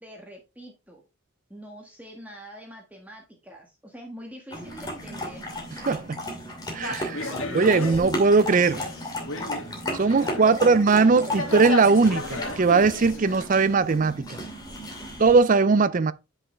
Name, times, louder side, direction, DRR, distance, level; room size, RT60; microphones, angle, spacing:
voice 1, 0.0-1.0 1.5-5.4 10.4-12.0, equal, 10° right, 1.4 m, -44 dB
sound 1, 4.5-15.4, left 1 dB, 20° left, 2.4 m, -35 dB
voice 2, 5.9-6.2 6.7-8.8 9.9-14.4 15.2-16.1, right 4 dB, 40° right, 0.5 m, -20 dB
sound 2, 6.8-10.5 10.9-13.7, left 3 dB, 75° left, 1.9 m, -35 dB
9.6 x 5.6 x 3.3 m
head